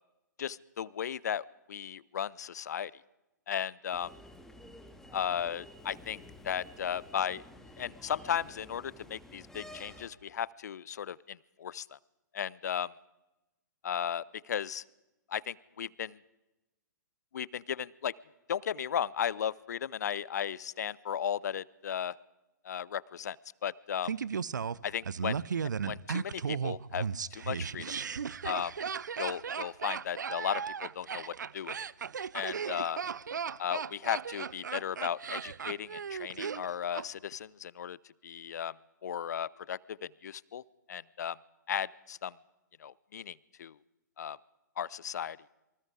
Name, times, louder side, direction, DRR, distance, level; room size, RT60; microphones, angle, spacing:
voice 1, 0.4-2.9 3.5-4.1 5.1-7.4 7.8-11.9 12.3-12.9 13.8-14.8 15.3-16.2 17.3-18.1 18.5-22.2 22.6-23.4 23.6-24.1 24.8-25.4 25.8-27.8 28.4-28.7 29.2-31.7 32.3-33.0 33.6-38.0 38.2-38.7 39.0-40.6 40.9-41.4 41.7-42.3 42.8-43.7 44.2-44.4 44.8-45.4, left 9 dB, 60° left, 23 dB, 0.8 m, -35 dB
sound 1, 3.9-10.1, left 1 dB, 5° left, 2.4 m, -51 dB
Laughter, 24.0-37.1 37.3-37.4, right 6 dB, 70° right, 0.8 m, -36 dB
27.5 x 24.5 x 4.9 m, 0.99 s
figure-of-eight pair, 120°, 10 cm